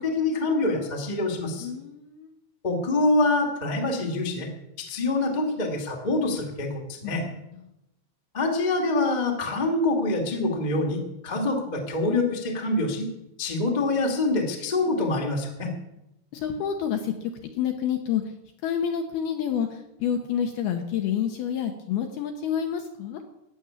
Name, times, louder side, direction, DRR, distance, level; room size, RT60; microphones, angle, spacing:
voice 1, 0.0-1.7 2.6-4.5 4.8-7.2 8.3-13.1 13.4-15.7, left 2 dB, 35° left, 1 dB, 0.6 m, -25 dB
voice 2, 1.6-2.3 7.0-7.4 16.3-18.2 18.6-23.2, left 8 dB, 75° left, 5 dB, 2.4 m, -28 dB
15.0 x 7.2 x 9.6 m, 0.90 s
omnidirectional pair, 5.5 m